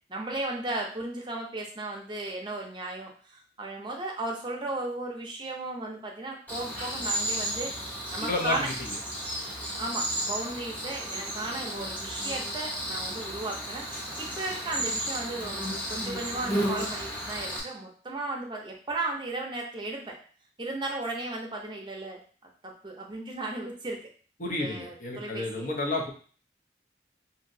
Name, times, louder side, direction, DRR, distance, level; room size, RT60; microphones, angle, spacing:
voice 1, 0.1-8.7 9.8-20.2 20.6-22.2 22.6-24.0 24.5-25.7, right 2 dB, 25° right, 0 dB, 0.6 m, -35 dB
Cricket, 6.5-17.6, equal, 10° left, 0.7 m, -33 dB
voice 2, 8.2-8.7 24.4-26.1, left 2 dB, 45° left, 0 dB, 0.6 m, -30 dB
2.9 x 2.6 x 2.6 m, 0.42 s
head